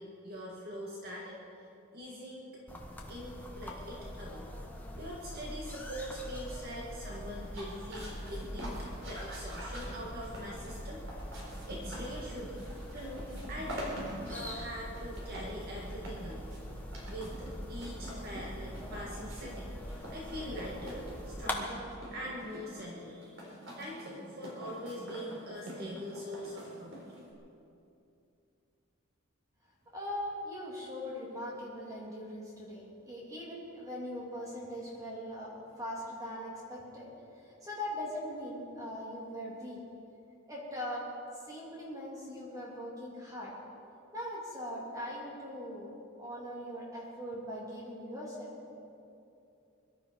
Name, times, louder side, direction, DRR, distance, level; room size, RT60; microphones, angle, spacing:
voice 1, 0.0-1.7 1.9-2.5 3.1-4.4 5.0-11.0 11.6-12.6 12.9-16.6 17.1-19.7 20.1-21.8 22.1-23.3 23.7-27.0, equal, 50° right, -4 dB, 2.0 m, -43 dB
sound 1, 2.7-21.6, equal, 10° left, 1.3 m, -43 dB
sound 2, 7.4-27.3, equal, 65° right, 4.2 m, -46 dB
voice 2, 29.9-39.8 40.5-41.1 41.4-43.5 44.1-48.8, left 1 dB, 15° right, -5 dB, 3.1 m, -41 dB
22.5 x 12.5 x 4.7 m, 2.7 s
head